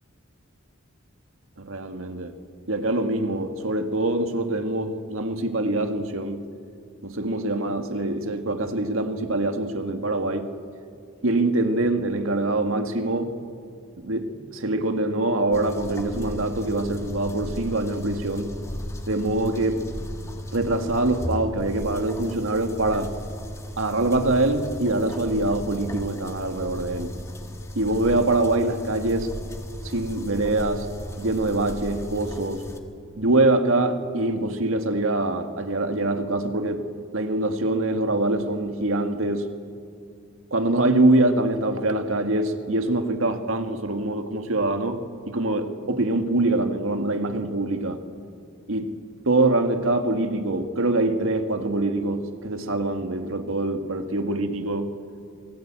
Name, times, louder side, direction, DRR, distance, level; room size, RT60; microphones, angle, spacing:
voice 1, 1.6-2.3 2.7-6.5 7.0-10.5 11.2-13.3 14.0-18.5 19.1-19.8 20.5-23.1 23.8-27.1 27.8-29.3 29.8-30.9 31.2-32.7 33.2-36.9 37.1-39.5 40.5-45.0 45.3-48.0 48.7-49.0 49.3-54.9, right 2 dB, 85° right, 6 dB, 1.9 m, -24 dB
sound 1, 15.5-32.8, left 1 dB, 15° left, 1.6 m, -36 dB
26.5 x 19.5 x 8.9 m, 2.3 s
head